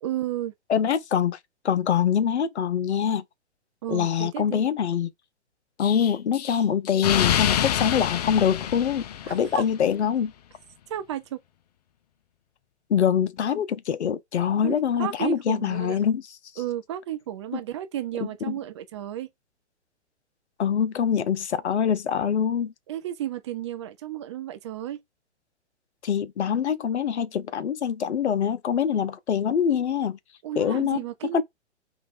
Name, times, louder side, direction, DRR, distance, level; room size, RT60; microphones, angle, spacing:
voice 1, 0.0-0.5 3.8-4.6 9.2-9.6 10.9-11.4 14.6-16.0 16.6-19.3 22.9-25.0 30.4-31.4, right 12 dB, 25° right, 0.4 m, -33 dB
voice 2, 0.7-1.4 1.6-3.2 3.9-5.1 5.8-10.3 12.9-16.2 17.5-17.6 18.4-18.6 20.6-22.7 26.0-30.2 30.6-31.0 31.3-31.4, left 8 dB, 70° left, 0.8 m, -24 dB
Explosion, 5.8-9.7, left 10 dB, 35° left, 0.4 m, -27 dB
3.8 x 3.2 x 3.6 m
figure-of-eight pair, 125°, 35 cm